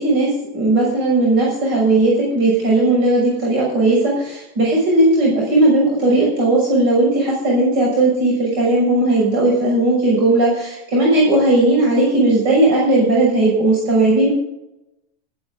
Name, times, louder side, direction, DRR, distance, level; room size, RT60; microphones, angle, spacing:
voice 1, 0.0-14.3, right 2 dB, 50° right, -3 dB, 6.4 m, -16 dB
15.0 x 14.0 x 3.9 m, 0.88 s
supercardioid pair, 165°, 36 cm